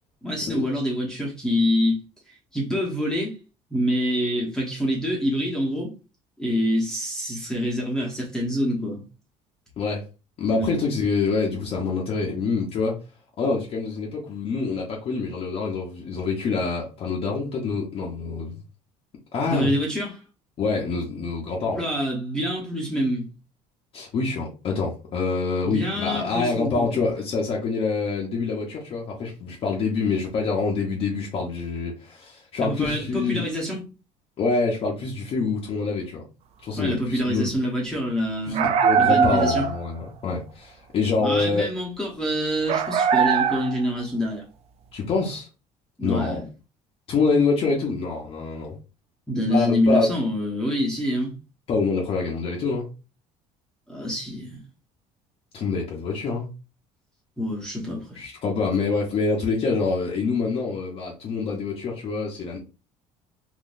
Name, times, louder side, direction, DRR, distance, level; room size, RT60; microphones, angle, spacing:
voice 1, 0.2-2.0 2.3-3.4 3.7-5.9 6.4-9.0 10.5-10.7 19.4-20.2 21.7-23.3 25.6-27.1 32.6-33.8 36.8-39.7 41.2-44.5 46.0-46.5 49.3-51.3 53.9-54.6 57.4-58.2, equal, 5° left, 1.0 m, -26 dB
voice 2, 10.4-12.9 13.4-18.5 19.3-19.7 20.6-21.8 23.9-33.4 34.4-36.2 36.6-37.6 38.5-41.7 44.9-45.5 46.0-46.4 47.1-48.8 49.5-50.1 51.7-52.9 55.5-56.5 58.2-62.6, left 4 dB, 40° left, 0.8 m, -26 dB
sound 1, 38.5-39.9 42.7-43.9, right 7 dB, 50° right, 0.4 m, -21 dB
3.8 x 2.7 x 2.5 m
cardioid pair, 135°, 14 cm